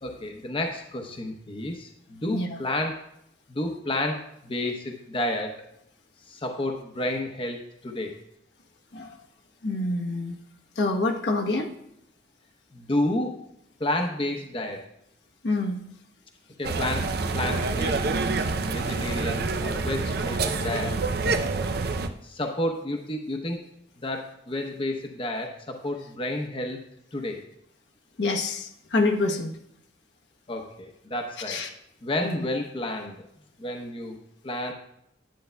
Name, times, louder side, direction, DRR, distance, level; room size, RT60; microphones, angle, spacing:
voice 1, 0.0-3.0 3.5-5.6 6.3-8.1 12.7-13.4 13.8-14.8 16.6-17.1 17.3-18.1 18.6-21.0 22.2-23.6 24.0-26.8 27.1-27.4 30.5-31.6 32.0-33.2 33.6-34.2 34.4-34.7, left 1 dB, 30° left, 2 dB, 0.8 m, -30 dB
voice 2, 9.6-10.4 10.8-11.7 15.4-15.8 28.2-29.6 31.5-31.7 32.2-32.4, left 2 dB, 75° left, 2 dB, 1.0 m, -26 dB
sound 1, 16.6-22.1, right 3 dB, 60° right, 0.5 m, -27 dB
10.5 x 8.4 x 2.2 m, 0.77 s
head